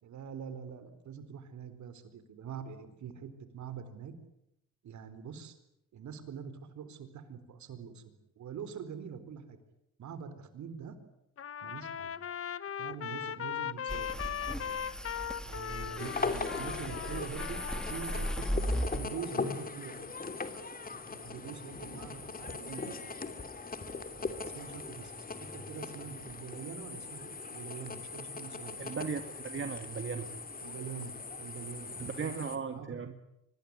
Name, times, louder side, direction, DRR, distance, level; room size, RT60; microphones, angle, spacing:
voice 1, 0.0-3.3 3.5-4.1 4.8-5.6 5.9-8.0 8.4-9.6 10.0-11.0 11.6-12.1 12.8-14.9 15.4-20.1 20.9-23.2 24.1-28.8 30.6-32.4 32.7-33.0, right 7 dB, 70° right, 11 dB, 4.3 m, -44 dB
Trumpet, 11.4-18.5, left 9 dB, 50° left, 1.2 m, -39 dB
sound 1, 13.9-19.0, equal, ahead, 2.9 m, -37 dB
sound 2, 16.0-32.6, left 4 dB, 30° left, 3.0 m, -40 dB
voice 2, 28.8-30.3 32.0-33.1, right 6 dB, 40° right, 7 dB, 2.1 m, -37 dB
25.5 x 20.5 x 9.7 m, 0.82 s
cardioid pair, 90°, 30 cm